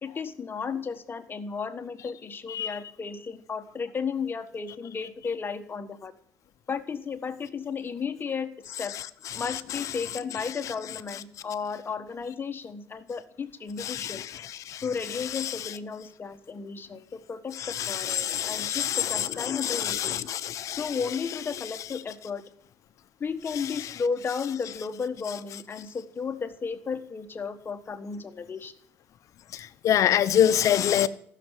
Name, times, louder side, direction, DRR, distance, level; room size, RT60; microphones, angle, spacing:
voice 1, 0.0-6.1 6.7-8.5 8.8-8.9 9.3-14.2 14.8-20.3 20.8-22.4 23.2-28.7, left 5 dB, 35° left, 1.4 m, -34 dB
voice 2, 13.8-14.3 14.7-14.8 15.4-15.5 17.6-20.9 29.5-31.1, left 10 dB, 60° left, 0.9 m, -26 dB
15.0 x 6.8 x 9.3 m
supercardioid pair, 75°, 6 cm